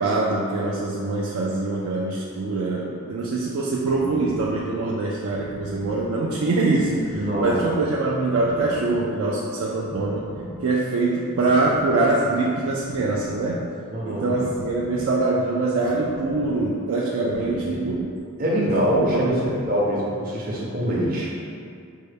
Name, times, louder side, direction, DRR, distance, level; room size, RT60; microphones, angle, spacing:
voice 1, 0.0-10.3 10.6-13.7 14.0-18.1 19.1-19.4, right 3 dB, 60° right, -4 dB, 0.3 m, -24 dB
sound 1, 3.8-20.2, left 1 dB, 80° left, 0.4 m, -41 dB
voice 2, 7.1-7.7 13.9-14.4 17.2-17.7 18.4-21.3, equal, 40° right, -5 dB, 0.7 m, -24 dB
5.4 x 2.1 x 3.3 m, 2.4 s
head